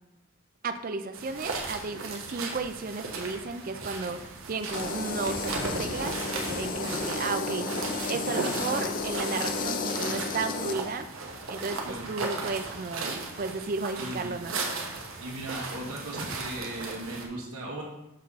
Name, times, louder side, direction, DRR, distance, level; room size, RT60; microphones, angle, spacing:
voice 1, 0.6-11.1 11.5-14.6, right 4 dB, 40° right, 9 dB, 0.4 m, -34 dB
sound 1, 1.1-17.3, right 3 dB, 70° right, 1.1 m, -36 dB
sound 2, 4.7-10.7, left 4 dB, 40° left, 0.5 m, -32 dB
voice 2, 11.8-12.2 14.0-14.4 15.2-17.8, right 1 dB, 90° right, -3 dB, 1.4 m, -37 dB
6.6 x 3.6 x 5.6 m, 0.91 s
head